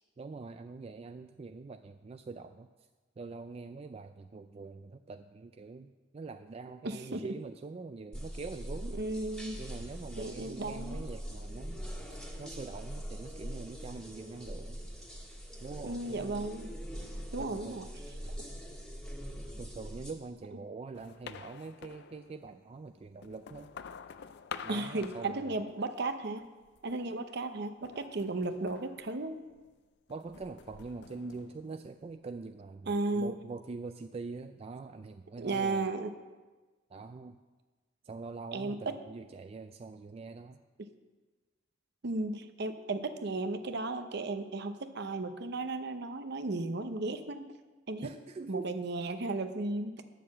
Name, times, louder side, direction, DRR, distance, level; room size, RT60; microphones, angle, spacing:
voice 1, 0.2-2.7 3.2-9.0 9.6-11.8 12.1-14.8 15.6-16.5 17.4-17.9 19.6-23.7 24.6-25.6 30.1-35.9 36.9-37.4 38.0-40.6 48.0-48.7, right 4 dB, 30° right, 8 dB, 0.3 m, -44 dB
voice 2, 6.8-7.2 8.9-9.6 10.2-11.0 15.8-16.7 17.3-17.9 24.7-26.4 26.8-29.4 32.9-33.4 35.4-36.1 38.5-39.0 40.8-40.9 42.0-47.5 47.9-48.1 48.5-49.9, right 2 dB, 60° right, 8 dB, 0.8 m, -35 dB
sound 1, 8.1-20.1, equal, 5° left, 1.7 m, -42 dB
sound 2, 20.9-22.6 23.1-26.1 26.4-27.0 27.8-29.7 30.1-32.2, left 7 dB, 60° left, 0.4 m, -48 dB
10.5 x 6.9 x 7.4 m, 1.3 s
head